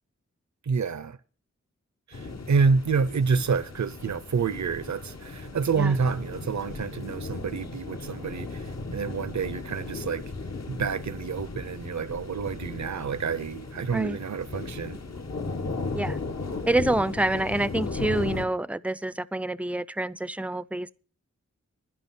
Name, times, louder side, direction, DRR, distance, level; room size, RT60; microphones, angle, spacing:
voice 1, 0.6-1.2 2.1-10.2 10.7-15.0, right 5 dB, 75° right, 0.7 m, -28 dB
sound 1, 2.1-18.4, left 3 dB, 65° left, 1.5 m, -36 dB
voice 2, 16.7-20.9, right 1 dB, 5° right, 0.5 m, -27 dB
11.0 x 10.5 x 6.1 m
wide cardioid pair, 55°, 29 cm